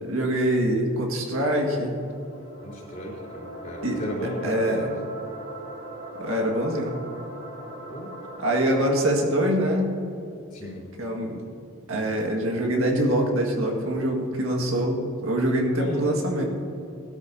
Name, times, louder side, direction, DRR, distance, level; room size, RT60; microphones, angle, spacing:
voice 1, 0.0-2.0 3.8-4.0 4.4-4.9 6.1-7.0 8.4-9.9 10.6-10.7 11.0-11.4 11.9-16.4, right 1 dB, 75° right, 1 dB, 1.8 m, -24 dB
sound 1, 1.9-9.1, right 1 dB, 50° right, 3.0 m, -40 dB
voice 2, 2.6-4.8 7.9-8.1 10.5-10.9 15.8-16.1, left 1 dB, 40° left, -5 dB, 3.5 m, -35 dB
19.0 x 13.0 x 2.8 m, 2.8 s
head